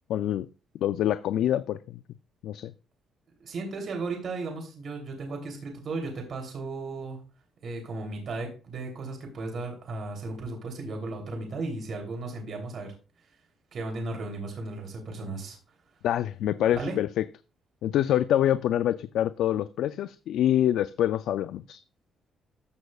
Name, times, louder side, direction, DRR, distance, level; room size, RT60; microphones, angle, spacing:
voice 1, 0.1-0.5 0.8-2.0 2.4-2.7 16.0-17.1 17.8-21.8, left 11 dB, 80° left, 13 dB, 0.3 m, -26 dB
voice 2, 3.4-7.2 7.6-12.9 13.7-15.6 16.7-17.0, right 3 dB, 55° right, 2 dB, 3.1 m, -35 dB
14.5 x 6.4 x 2.4 m, 0.34 s
cardioid pair, 90°, 0 cm